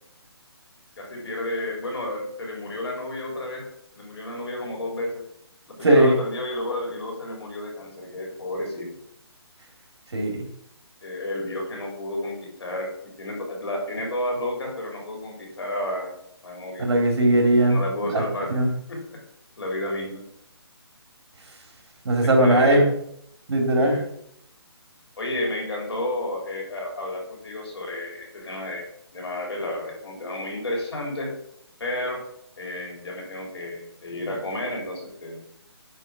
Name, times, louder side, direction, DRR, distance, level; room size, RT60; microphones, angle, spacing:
voice 1, 1.0-3.7 3.9-5.2 5.7-9.0 11.0-16.1 16.4-16.9 17.7-19.2 19.6-20.2 22.2-22.9 23.8-24.1 25.2-28.9 29.1-31.3 31.8-32.2 32.6-35.4, left 1 dB, 75° left, 0 dB, 3.4 m, -31 dB
voice 2, 5.8-6.1 10.1-10.4 16.8-17.8 18.1-18.2 18.5-18.7 22.0-22.8 23.5-24.0, right 1 dB, 70° right, 2 dB, 2.6 m, -18 dB
9.3 x 3.7 x 5.0 m, 0.73 s
hypercardioid pair, 155°, 14 cm